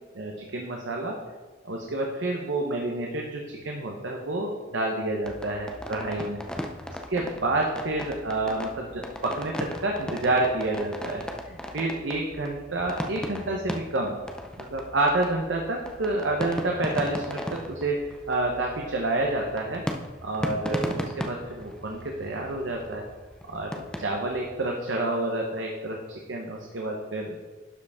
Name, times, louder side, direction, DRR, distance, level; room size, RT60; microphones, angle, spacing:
voice 1, 0.1-1.2 1.6-6.4 7.1-14.2 14.6-19.8 20.2-23.0 23.5-26.0 26.3-27.4, right 2 dB, 85° right, 0 dB, 0.9 m, -29 dB
sound 1, 5.2-24.7, equal, 5° left, 0.5 m, -37 dB
11.5 x 5.0 x 3.5 m, 1.4 s
head